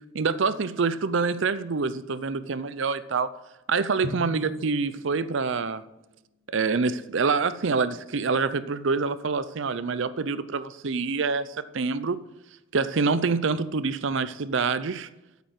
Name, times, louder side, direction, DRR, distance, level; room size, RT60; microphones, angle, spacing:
voice 1, 0.1-3.3 3.7-5.8 6.5-12.2 12.7-15.1, right 4 dB, 65° right, 15 dB, 0.5 m, -26 dB
Drum, 4.0-6.8, left 1 dB, 60° left, 1.1 m, -42 dB
8.6 x 8.3 x 7.9 m, 0.96 s
head